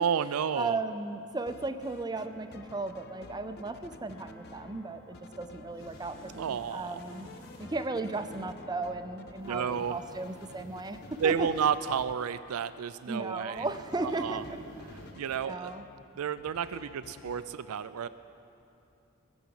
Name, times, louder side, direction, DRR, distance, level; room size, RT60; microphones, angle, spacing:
voice 1, 0.0-0.8 6.3-7.0 9.5-10.0 11.2-13.7 14.0-14.4 15.2-15.7 16.2-18.1, right 7 dB, 85° right, 14 dB, 0.4 m, -31 dB
voice 2, 0.5-7.3 7.6-11.5 13.1-14.6 15.4-15.8, right 2 dB, 20° right, 9 dB, 0.5 m, -36 dB
sound 1, 1.3-2.3 2.5-4.8 5.1-6.7 7.0-12.1 13.7-16.0 16.4-17.5, left 4 dB, 45° left, 0.5 m, -52 dB
sound 2, 2.1-10.1, left 1 dB, 25° left, 2.9 m, -52 dB
sound 3, 5.7-7.7 9.4-11.8 13.5-15.1, equal, 70° left, 4.0 m, -52 dB
20.0 x 7.0 x 7.9 m, 2.7 s
head